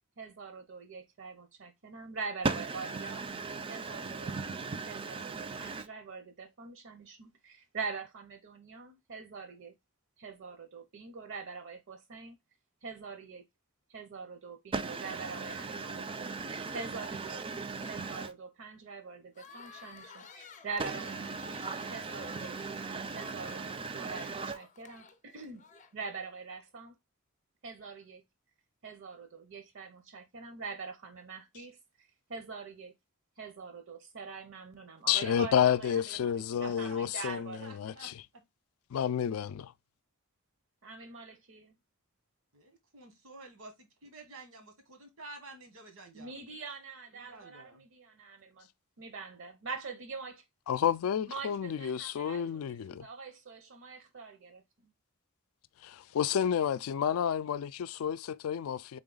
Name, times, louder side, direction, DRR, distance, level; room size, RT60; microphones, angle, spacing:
voice 1, 0.2-3.2 3.7-4.3 4.9-9.7 10.2-12.4 12.8-13.4 13.9-16.3 16.7-17.4 17.8-21.1 21.4-21.6 21.9-22.5 23.1-25.7 25.9-26.9 27.6-28.2 28.8-31.8 32.3-32.9 33.4-37.7 40.8-41.8 46.1-48.7 49.0-50.4 51.3-54.9, right 4 dB, 60° right, 0.6 m, -44 dB
voice 2, 2.4-5.9 14.7-18.3 20.8-24.6, right 4 dB, 25° right, 0.4 m, -38 dB
sound 1, 19.3-26.3, left 5 dB, 35° left, 0.6 m, -53 dB
voice 3, 35.1-38.1 38.9-39.7 50.7-53.1 55.8-59.0, left 8 dB, 85° left, 0.3 m, -30 dB
voice 4, 36.6-37.0 37.6-38.5 42.5-46.4 47.1-47.8, right 2 dB, 85° right, 1.5 m, -50 dB
3.9 x 3.5 x 3.8 m
head